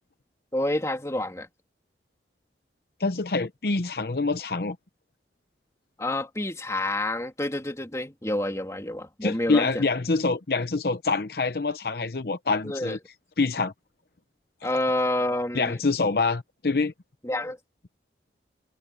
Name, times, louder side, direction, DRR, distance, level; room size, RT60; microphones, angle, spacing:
voice 1, 0.5-1.5 6.0-9.9 12.6-13.0 14.6-15.8 17.2-17.6, left 1 dB, 15° left, 3.1 m, -28 dB
voice 2, 3.0-4.8 9.2-13.0 13.4-13.7 15.5-16.9, left 3 dB, 60° left, 0.8 m, -25 dB
open air
head